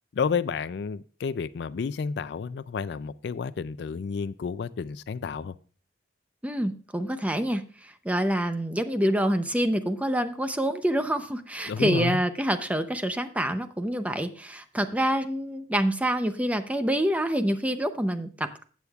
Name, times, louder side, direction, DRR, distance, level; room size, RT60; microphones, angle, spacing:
voice 1, 0.1-5.6 11.7-12.2, left 5 dB, 65° left, 16 dB, 0.4 m, -30 dB
voice 2, 6.4-18.6, right 1 dB, 10° right, 9 dB, 0.6 m, -27 dB
15.0 x 8.3 x 2.4 m, 0.39 s
head